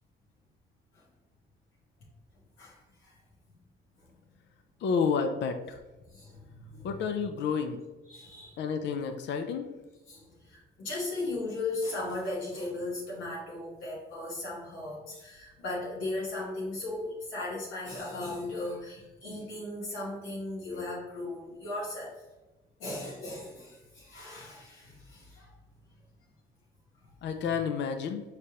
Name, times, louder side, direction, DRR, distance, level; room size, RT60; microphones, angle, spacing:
voice 1, 2.6-3.2 6.1-6.9 8.1-8.6 10.1-22.1 22.8-25.5 27.0-27.4, left 2 dB, 85° left, -5 dB, 1.1 m, -37 dB
voice 2, 4.8-5.8 6.8-7.8 8.6-9.7 27.2-28.2, left 6 dB, 65° left, 7 dB, 0.5 m, -30 dB
4.8 x 3.3 x 2.8 m, 1.1 s
cardioid pair, 90°, 20 cm